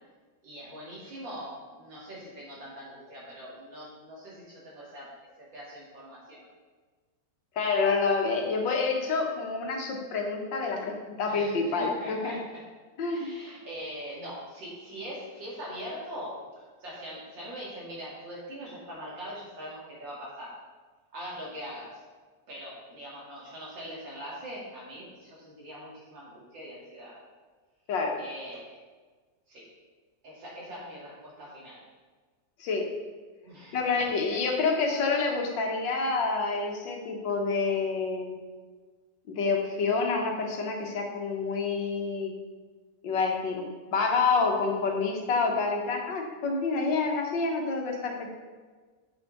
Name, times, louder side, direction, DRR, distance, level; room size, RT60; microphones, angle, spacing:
voice 1, 0.4-6.5 11.2-12.7 13.1-20.6 21.1-22.0 22.5-27.2 28.2-28.8 29.5-29.7 30.2-31.9 33.4-33.8 34.2-34.4, equal, 80° right, -6 dB, 3.0 m, -42 dB
voice 2, 7.6-12.4 13.0-13.3 27.9-28.2 32.6-32.9 33.7-38.4 39.3-42.3 43.0-48.3, left 4 dB, 85° left, 2 dB, 1.8 m, -28 dB
7.5 x 5.8 x 4.0 m, 1.4 s
omnidirectional pair, 2.0 m